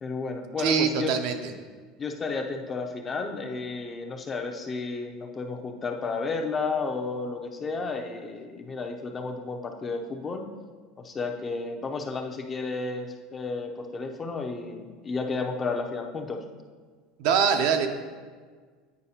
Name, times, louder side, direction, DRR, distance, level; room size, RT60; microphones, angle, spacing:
voice 1, 0.0-1.1 2.0-10.5 11.0-16.4, left 4 dB, 25° left, 2 dB, 0.6 m, -32 dB
voice 2, 0.6-1.5 17.2-17.9, right 6 dB, 70° right, 6 dB, 0.6 m, -23 dB
9.4 x 4.7 x 2.8 m, 1.5 s
supercardioid pair, 130°, 0 cm